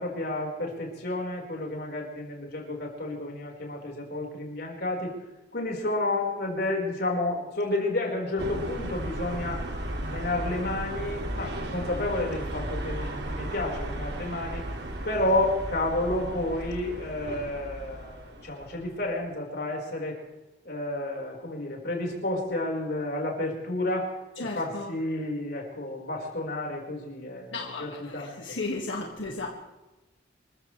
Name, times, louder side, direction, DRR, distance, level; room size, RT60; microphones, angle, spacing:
voice 1, 0.0-5.1 5.5-9.6 10.1-14.6 15.0-20.2 20.6-28.6, left 2 dB, 55° left, -1 dB, 4.7 m, -31 dB
sound 1, 8.4-19.1, right 1 dB, 60° right, 2.2 m, -35 dB
voice 2, 24.4-25.0 27.5-29.5, left 3 dB, 90° left, 0 dB, 2.0 m, -34 dB
27.5 x 15.0 x 3.3 m, 1.1 s
head